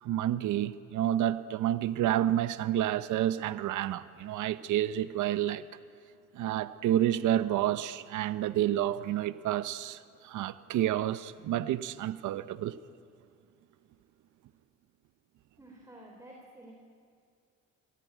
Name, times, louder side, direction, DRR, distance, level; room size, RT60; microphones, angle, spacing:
voice 1, 0.0-5.6 6.3-12.8, right 12 dB, 80° right, 0.8 m, -29 dB
voice 2, 15.6-16.7, right 1 dB, 10° right, 3.9 m, -51 dB
26.0 x 17.5 x 9.2 m
cardioid pair, 90°, 30 cm